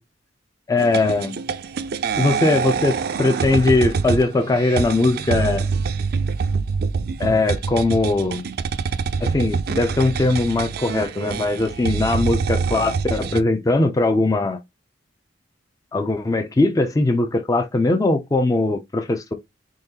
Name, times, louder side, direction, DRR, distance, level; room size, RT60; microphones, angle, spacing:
voice 1, 0.7-1.4 2.2-5.6 7.2-8.4 9.2-14.6 15.9-19.3, left 2 dB, 20° left, 0.4 m, -20 dB
sound 1, 0.8-13.4, right 5 dB, 55° right, 0.4 m, -25 dB
3.8 x 3.1 x 2.7 m
head